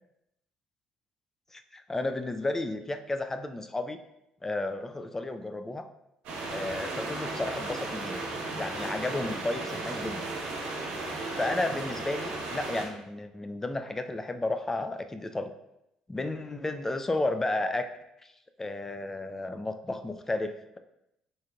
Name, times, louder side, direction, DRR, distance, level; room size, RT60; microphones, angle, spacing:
voice 1, 1.5-4.0 4.4-5.9 6.5-8.2 8.6-10.2 11.4-15.5 16.1-17.9 18.2-18.3 18.6-20.8, left 2 dB, 20° left, 9 dB, 0.3 m, -32 dB
sound 1, 6.2-12.9, right 2 dB, 75° right, 1.0 m, -35 dB
3.9 x 3.7 x 2.3 m, 0.84 s
supercardioid pair, 65°, 2 cm